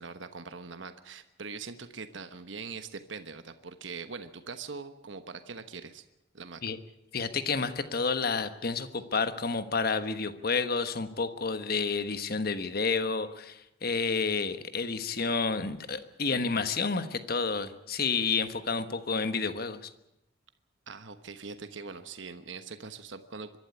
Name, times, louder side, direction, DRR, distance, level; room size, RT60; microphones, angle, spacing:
voice 1, 0.0-6.0 6.3-6.6 20.9-23.6, right 4 dB, 70° right, 9 dB, 1.2 m, -42 dB
voice 2, 7.1-19.9, left 4 dB, 50° left, 10 dB, 1.3 m, -30 dB
24.0 x 12.5 x 9.7 m, 0.89 s
head